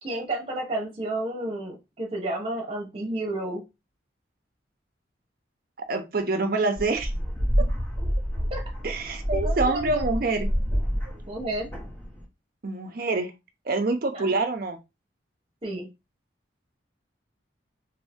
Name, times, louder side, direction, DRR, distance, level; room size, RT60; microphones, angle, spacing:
voice 1, 0.0-3.6 8.5-8.6 9.3-10.1 11.2-11.7 14.1-14.4 15.6-15.9, right 1 dB, 30° right, 0 dB, 0.9 m, -31 dB
voice 2, 5.9-7.1 8.8-10.5 12.6-13.3 13.7-14.8, right 3 dB, 50° right, 6 dB, 0.6 m, -26 dB
sound 1, 6.8-12.2, equal, 10° left, 1.1 m, -28 dB
2.6 x 2.6 x 3.4 m, 0.24 s
head